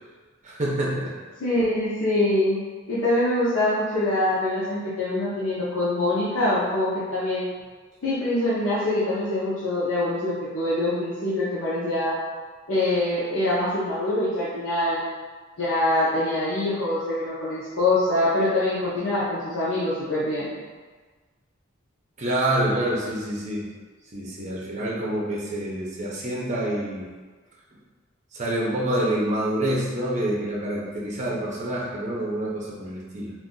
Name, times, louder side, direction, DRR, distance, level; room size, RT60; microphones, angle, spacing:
voice 1, 0.4-1.1 22.2-23.7 24.1-27.1 28.3-33.3, right 1 dB, 35° right, -4 dB, 0.7 m, -27 dB
voice 2, 1.4-2.6 2.9-7.5 8.0-12.1 12.7-15.0 15.6-20.5, left 1 dB, 85° left, -10 dB, 0.7 m, -24 dB
2.5 x 2.5 x 3.8 m, 1.4 s
head